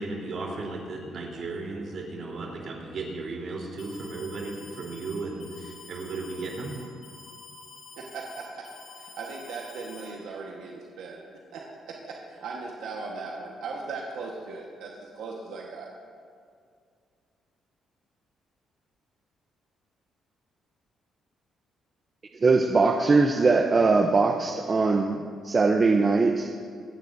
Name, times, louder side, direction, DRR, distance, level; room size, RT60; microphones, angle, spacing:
voice 1, 0.0-6.7, right 3 dB, 55° right, -2 dB, 3.5 m, -35 dB
Alarm, 3.8-10.1, left 3 dB, 90° left, 3.8 m, -48 dB
voice 2, 8.0-8.7 8.9-11.2 11.5-15.9, right 4 dB, 85° right, -1 dB, 1.3 m, -38 dB
voice 3, 22.4-25.2 25.4-26.5, right 3 dB, 35° right, 4 dB, 0.7 m, -21 dB
25.5 x 9.4 x 2.7 m, 2.2 s
cardioid pair, 90°, 0 cm